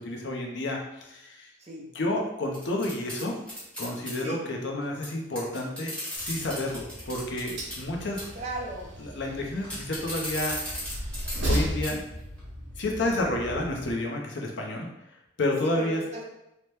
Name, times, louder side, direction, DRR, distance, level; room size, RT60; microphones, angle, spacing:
voice 1, 0.0-1.5 1.9-3.4 3.8-5.9 6.2-8.2 9.0-10.5 11.5-12.0 12.8-16.0, left 1 dB, 65° left, 1 dB, 0.6 m, -30 dB
sound 1, 2.5-4.2 5.0-5.1 5.3-7.8 8.2-8.4 9.6-11.6 11.8-11.9 12.4-12.5, equal, 5° left, 1.1 m, -36 dB
Train, 6.2-13.9, equal, 70° right, 0.7 m, -36 dB
voice 2, 8.3-8.9 15.6-16.2, right 2 dB, 35° right, -3 dB, 0.6 m, -36 dB
2.8 x 2.1 x 3.2 m, 0.86 s
head